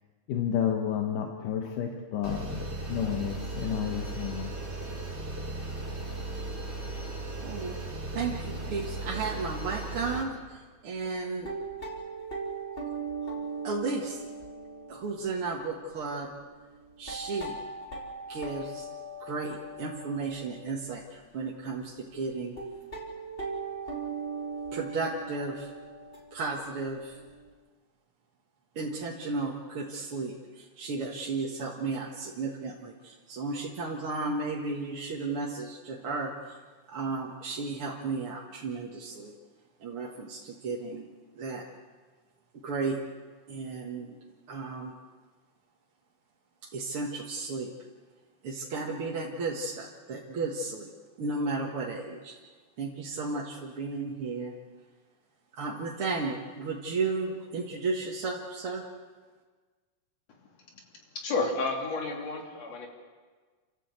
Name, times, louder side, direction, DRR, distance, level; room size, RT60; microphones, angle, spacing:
voice 1, 0.3-4.5, left 9 dB, 85° left, 3 dB, 3.0 m, -31 dB
sound 1, 2.2-10.2, right 2 dB, 20° right, 4.2 m, -36 dB
voice 2, 7.4-7.8 8.1-11.5 13.6-14.2 14.9-16.3 17.0-17.5 18.3-18.9 19.2-22.5 24.7-25.7 26.3-27.2 28.8-36.6 36.9-39.3 39.8-41.7 42.6-43.0 43.5-44.2 44.5-44.9 46.7-47.7 48.4-50.9 51.2-52.3 52.8-54.5 55.5-58.8, right 3 dB, 45° right, -3 dB, 2.4 m, -34 dB
sound 2, 8.6-8.9 9.3-9.4 9.8-9.9 10.4-10.5 11.2-21.2 21.8-21.9 22.1-22.2 22.6-27.5, right 4 dB, 15° left, 3.9 m, -40 dB
voice 3, 61.2-62.9, left 3 dB, 55° left, 1 dB, 3.9 m, -31 dB
29.5 x 14.0 x 8.2 m, 1.4 s
omnidirectional pair, 3.7 m